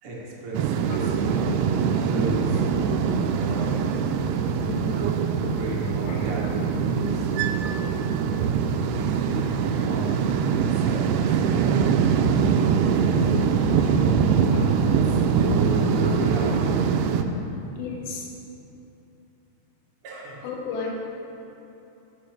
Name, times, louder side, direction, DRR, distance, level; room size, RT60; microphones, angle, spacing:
voice 1, 0.0-1.4 1.9-2.6 3.4-3.8 4.5-5.0 5.4-7.3 8.8-10.2 10.6-11.2 13.0-14.3 14.8-16.8 20.0-20.4, right 2 dB, 70° right, -5 dB, 1.3 m, -32 dB
sound 1, 0.5-17.2, right 6 dB, 90° right, 2.3 m, -23 dB
voice 2, 6.1-6.5 9.4-9.6 10.3-10.4 11.3-11.4 13.6-13.7 14.5-14.6 16.0-16.5 17.7-18.3 20.4-20.9, left 5 dB, 70° left, -2 dB, 3.5 m, -36 dB
10.0 x 7.2 x 6.1 m, 2.9 s
omnidirectional pair, 5.3 m